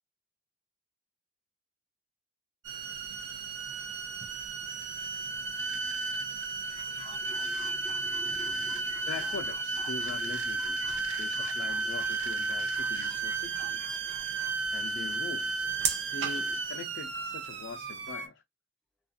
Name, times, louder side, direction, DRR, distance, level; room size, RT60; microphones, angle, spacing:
sound 1, 2.6-18.3, right 4 dB, 65° right, 0.6 m, -33 dB
sound 2, 6.7-14.5, left 1 dB, 20° right, 1.0 m, -50 dB
voice 1, 6.9-9.1 9.4-9.5 10.1-10.3 11.8-11.9 16.4-16.6, left 2 dB, 5° left, 0.5 m, -51 dB
voice 2, 9.1-10.8 11.2-14.0 14.7-15.7 16.1-18.4, left 4 dB, 70° left, 0.4 m, -42 dB
2.3 x 2.3 x 2.6 m
head